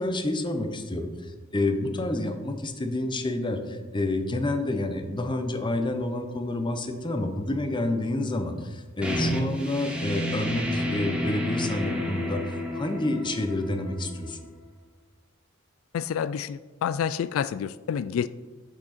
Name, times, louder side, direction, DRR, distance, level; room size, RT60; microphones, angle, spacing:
voice 1, 0.0-14.4, left 2 dB, 25° left, 6 dB, 0.8 m, -29 dB
sound 1, 9.0-14.5, left 1 dB, 5° right, 1.2 m, -31 dB
voice 2, 15.9-18.3, left 8 dB, 85° left, 16 dB, 0.3 m, -28 dB
9.0 x 6.0 x 4.3 m, 1.3 s
head